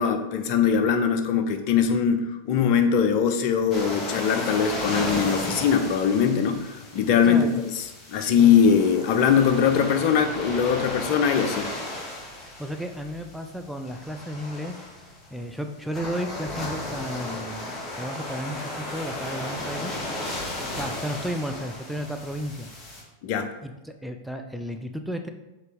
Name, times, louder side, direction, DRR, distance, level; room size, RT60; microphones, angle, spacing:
voice 1, 0.0-7.8 8.1-11.7 23.2-23.5, left 7 dB, 45° left, 7 dB, 0.7 m, -21 dB
sound 1, 3.7-23.0, left 1 dB, 20° left, 1.6 m, -35 dB
voice 2, 7.2-7.6 12.4-14.8 15.3-19.9 20.7-22.7 23.6-25.3, equal, ahead, 5 dB, 0.5 m, -33 dB
6.5 x 4.0 x 3.6 m, 1.0 s
figure-of-eight pair, 90°, 0 cm